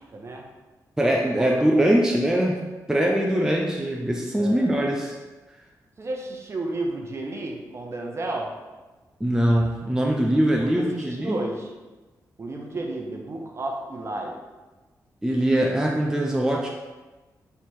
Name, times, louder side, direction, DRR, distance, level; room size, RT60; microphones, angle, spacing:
voice 1, 0.1-0.5 1.4-1.5 4.4-4.7 6.0-8.5 10.6-11.7 12.4-14.3, right 2 dB, 40° right, 1 dB, 0.7 m, -32 dB
voice 2, 1.0-2.6 2.9-5.2 9.2-11.4 15.2-16.7, right 1 dB, 10° right, -1 dB, 0.5 m, -22 dB
3.4 x 3.0 x 4.3 m, 1.2 s
cardioid pair, 75°, 7 cm